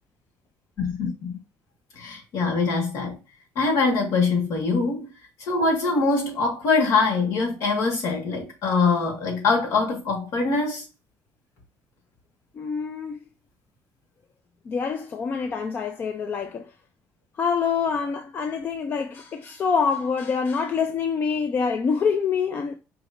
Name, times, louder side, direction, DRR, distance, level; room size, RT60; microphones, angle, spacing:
voice 1, 0.8-1.4 2.0-3.2 3.6-5.1 5.4-10.9, left 4 dB, 65° left, 1.6 m, -23 dB
voice 2, 12.5-13.2 14.7-16.7 17.4-22.8, left 5 dB, 35° left, 0.5 m, -26 dB
4.9 x 3.2 x 2.6 m
cardioid pair, 155°, 6 cm